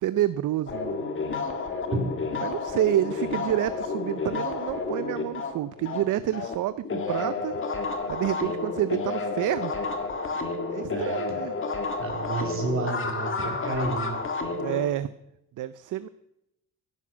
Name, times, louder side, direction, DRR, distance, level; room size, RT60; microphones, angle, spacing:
voice 1, 0.0-1.0 2.4-7.6 8.1-9.7 10.7-11.6 14.6-15.1 15.6-16.1, right 12 dB, 60° right, 14 dB, 0.6 m, -28 dB
sound 1, 0.7-6.6 6.8-14.8, left 4 dB, 35° left, 1.9 m, -31 dB
voice 2, 10.9-11.2 12.0-14.2, right 3 dB, 40° right, 1 dB, 3.8 m, -30 dB
16.0 x 11.0 x 6.1 m, 0.85 s
cardioid pair, 155°, 34 cm